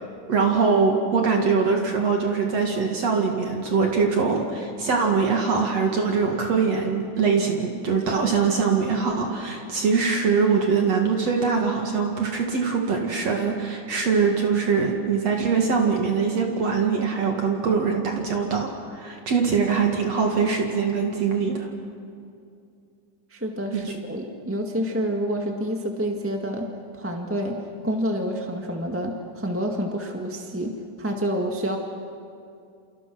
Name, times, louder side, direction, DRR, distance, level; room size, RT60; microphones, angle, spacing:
voice 1, 0.3-21.7 23.7-23.9, right 5 dB, 55° right, 1 dB, 3.1 m, -23 dB
voice 2, 23.3-31.8, equal, 5° right, 2 dB, 1.1 m, -28 dB
29.0 x 27.5 x 6.2 m, 2.4 s
omnidirectional pair, 3.6 m